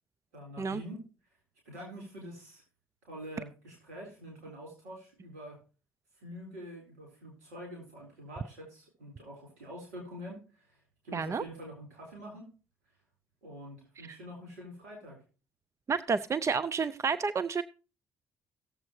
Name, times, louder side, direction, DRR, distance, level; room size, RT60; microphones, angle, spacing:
voice 1, 0.3-1.0 1.6-2.6 3.0-5.6 6.2-12.5 13.4-15.2, equal, 85° right, 4.4 m, -46 dB
voice 2, 11.1-11.4 14.1-14.2 15.9-17.6, right 5 dB, 35° right, 0.5 m, -30 dB
17.5 x 7.4 x 3.1 m
hypercardioid pair, 50°, 9 cm